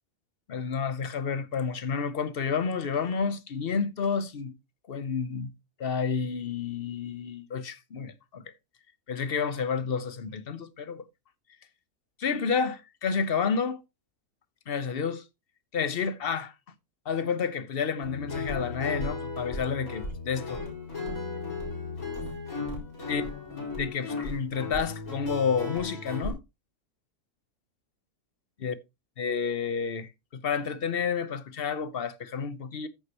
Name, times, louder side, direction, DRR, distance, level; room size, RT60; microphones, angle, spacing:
voice 1, 0.5-4.5 4.9-5.5 5.8-8.4 9.1-11.0 12.2-13.8 14.7-15.2 15.7-16.5 17.1-20.6 23.1-23.2 23.5-26.4 28.6-28.7 29.2-32.9, left 6 dB, 45° left, 0.9 m, -30 dB
Guitar, 18.0-26.3, left 3 dB, 65° left, 4.8 m, -35 dB
14.5 x 6.5 x 2.9 m
omnidirectional pair, 1.6 m